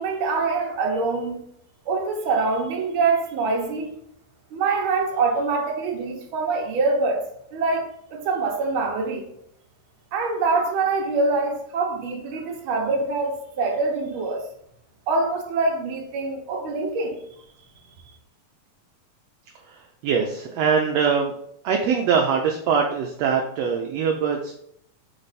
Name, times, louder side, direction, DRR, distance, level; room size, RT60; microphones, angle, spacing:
voice 1, 0.0-1.4 1.9-3.9 4.5-7.2 7.5-9.2 10.1-14.4 15.1-17.2, right 3 dB, 60° right, 1 dB, 1.5 m, -24 dB
voice 2, 19.6-21.3 21.6-24.5, right 6 dB, 75° right, 2 dB, 1.5 m, -23 dB
7.1 x 3.3 x 4.1 m, 0.70 s
omnidirectional pair, 3.6 m